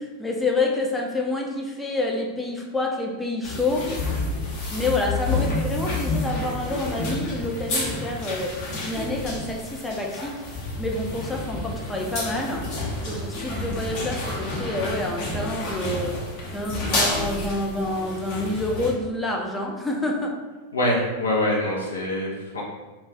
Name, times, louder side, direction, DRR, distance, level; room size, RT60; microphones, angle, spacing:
voice 1, 0.0-3.9 4.7-8.6 8.8-10.4 10.8-12.7 13.1-16.2 16.5-20.4, left 2 dB, 10° left, 0 dB, 0.5 m, -28 dB
sound 1, 3.4-18.9, left 2 dB, 45° left, 0.9 m, -29 dB
voice 2, 20.7-22.6, left 1 dB, 75° left, -3 dB, 0.6 m, -24 dB
2.4 x 2.4 x 3.9 m, 1.2 s
figure-of-eight pair, 90°, 0 cm